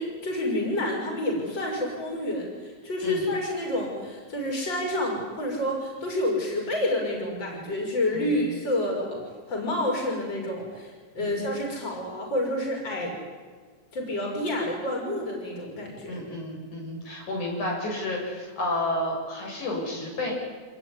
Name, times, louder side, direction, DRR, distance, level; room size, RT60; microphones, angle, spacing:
voice 1, 0.0-9.2 9.5-13.1 13.9-16.2, left 1 dB, 35° left, 0 dB, 6.8 m, -29 dB
voice 2, 16.1-20.3, left 1 dB, 80° left, -1 dB, 9.2 m, -31 dB
27.0 x 21.0 x 10.0 m, 1.5 s
omnidirectional pair, 3.4 m